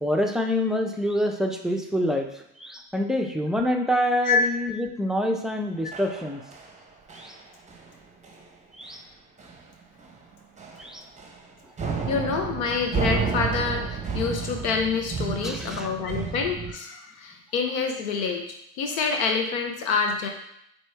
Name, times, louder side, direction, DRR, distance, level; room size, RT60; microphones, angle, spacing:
voice 1, 0.0-6.4 7.1-7.4 8.8-9.0 10.8-11.0 15.4-15.9, equal, ahead, 2 dB, 0.4 m, -26 dB
sound 1, 5.9-6.8 7.1-7.4 7.7-7.9 8.2-8.4 8.8-8.9 9.4-9.7 10.0-10.2 10.6-11.5 11.8-16.7, right 5 dB, 15° right, 0.8 m, -31 dB
voice 2, 12.1-18.4 18.8-20.3, left 5 dB, 85° left, 3 dB, 0.8 m, -26 dB
4.3 x 3.0 x 3.3 m, 0.77 s
hypercardioid pair, 75°, 42 cm